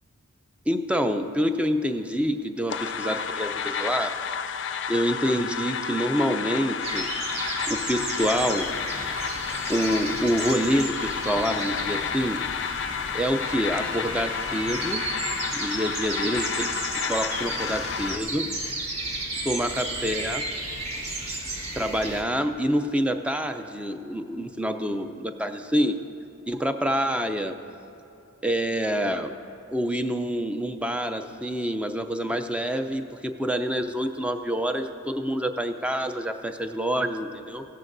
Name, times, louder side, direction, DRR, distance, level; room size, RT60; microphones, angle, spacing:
voice 1, 0.7-4.1 4.9-7.1 7.7-8.7 9.7-12.4 13.1-15.0 15.5-16.7 17.0-18.5 19.4-20.5 21.8-26.0 26.5-27.5 28.4-29.3 29.7-37.7, equal, 5° right, 7 dB, 0.4 m, -27 dB
sound 1, 2.7-18.2, left 7 dB, 55° left, 0.4 m, -31 dB
sound 2, 6.8-22.2, right 2 dB, 90° right, 1.6 m, -33 dB
16.5 x 12.5 x 2.6 m, 2.9 s
head